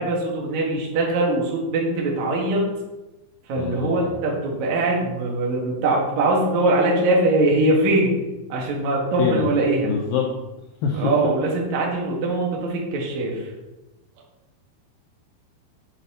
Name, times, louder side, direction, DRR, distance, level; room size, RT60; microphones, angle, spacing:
voice 1, 0.0-2.6 3.5-8.2 8.5-9.9 10.9-13.5, right 2 dB, 60° right, -2 dB, 2.1 m, -22 dB
voice 2, 3.6-4.1 9.2-9.5 9.8-10.3 10.8-11.1, left 6 dB, 90° left, 0 dB, 2.0 m, -25 dB
7.9 x 4.1 x 4.1 m, 1.0 s
omnidirectional pair, 4.8 m